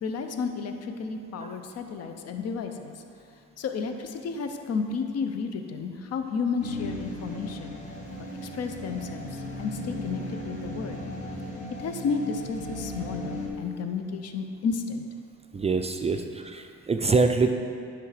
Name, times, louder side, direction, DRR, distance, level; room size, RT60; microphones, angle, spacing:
voice 1, 0.0-2.9 3.6-7.8 8.4-11.0 11.8-15.1 16.1-16.2, left 5 dB, 55° left, 6 dB, 0.7 m, -32 dB
sound 1, 6.6-13.5, left 1 dB, 25° left, 1.5 m, -36 dB
voice 2, 15.5-17.5, right 4 dB, 20° right, 5 dB, 0.4 m, -24 dB
10.0 x 3.4 x 4.9 m, 2.4 s
cardioid pair, 90°, 30 cm